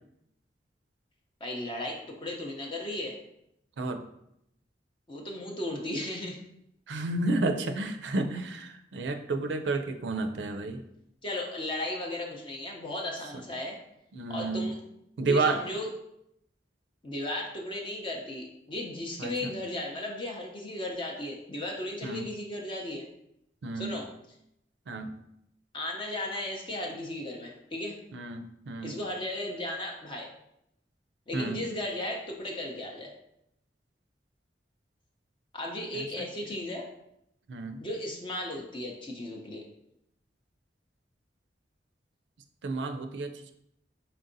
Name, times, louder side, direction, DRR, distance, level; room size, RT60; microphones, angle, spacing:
voice 1, 1.4-3.2 5.1-6.4 11.2-13.8 14.3-14.8 15.2-15.9 17.0-23.1 23.8-24.1 25.7-28.0 28.8-30.3 31.3-33.1 35.5-36.9 37.8-39.6, left 1 dB, 30° left, 0 dB, 0.5 m, -35 dB
voice 2, 6.9-10.8 14.1-14.7 15.2-15.6 19.2-19.6 22.0-22.2 23.6-24.0 24.9-25.2 28.1-29.0 31.3-31.6 35.9-36.3 37.5-37.8 42.6-43.5, right 3 dB, 80° right, 8 dB, 0.4 m, -31 dB
4.3 x 3.9 x 2.6 m, 0.78 s
head